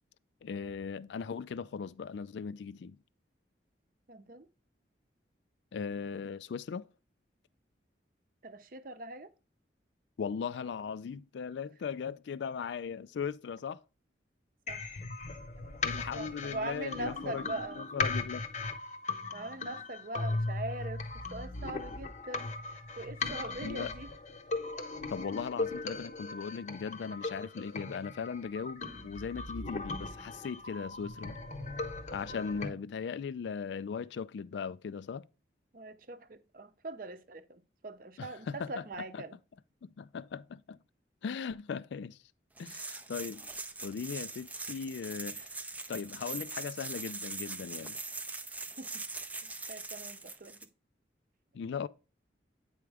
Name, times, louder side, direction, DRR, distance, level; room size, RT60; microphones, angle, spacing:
voice 1, 0.4-3.0 5.7-6.9 10.2-13.8 15.8-17.5 17.7-18.4 23.6-23.9 25.1-31.4 32.1-35.2 38.2-38.9 39.1-39.2 39.8-40.8 41.2-42.2 42.6-43.5 43.8-45.6 45.9-48.0 51.5-51.9, left 6 dB, 75° left, 0.3 m, -38 dB
voice 2, 4.1-4.5 8.4-9.3 14.7-15.0 16.2-17.8 19.3-21.0 21.3-22.5 23.0-24.1 32.3-32.8 35.7-39.4 48.8-48.9 49.4-50.6, right 2 dB, 50° right, 0.6 m, -42 dB
sound 1, 14.7-32.7, left 3 dB, 40° left, 0.7 m, -38 dB
sound 2, 42.6-50.7, right 3 dB, 10° right, 0.4 m, -42 dB
8.9 x 4.8 x 3.4 m
head